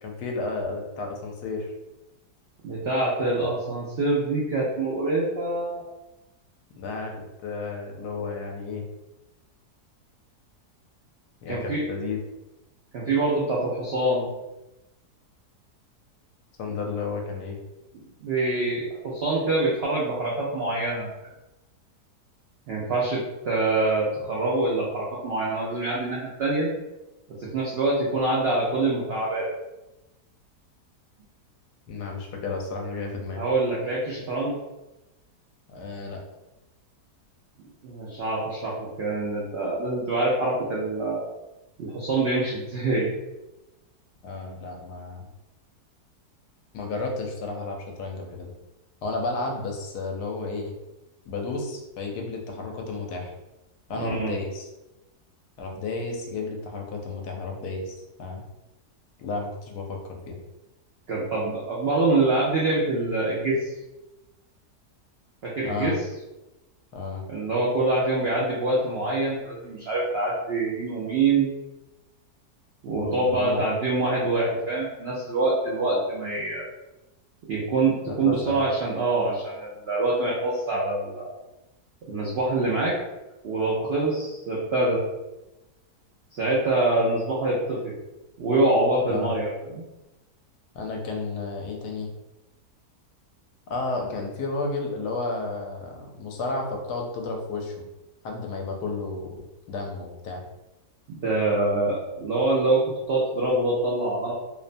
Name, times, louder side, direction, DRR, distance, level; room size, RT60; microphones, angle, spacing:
voice 1, 0.0-1.7 6.8-7.1 7.4-8.8 11.4-12.2 16.6-17.6 31.9-33.4 35.7-36.2 44.2-45.3 46.7-48.5 49.0-50.7 51.3-53.3 53.9-54.7 55.6-58.4 59.2-60.4 65.6-66.0 66.9-67.2 72.9-73.6 78.0-78.6 89.1-89.5 90.7-92.1 93.7-97.8 98.2-100.4, left 3 dB, 80° left, 1 dB, 1.2 m, -32 dB
voice 2, 2.6-5.8 11.5-11.8 12.9-14.3 17.9-21.1 22.7-26.7 27.4-29.5 33.4-34.6 37.8-41.2 41.8-43.1 53.9-54.3 61.1-63.7 65.4-65.9 67.3-71.5 72.8-76.7 77.5-81.3 82.0-83.0 83.4-85.0 86.3-87.9 88.4-89.9 101.1-104.3, right 2 dB, 80° right, -5 dB, 0.5 m, -25 dB
2.9 x 2.1 x 2.5 m, 0.98 s
omnidirectional pair, 1.7 m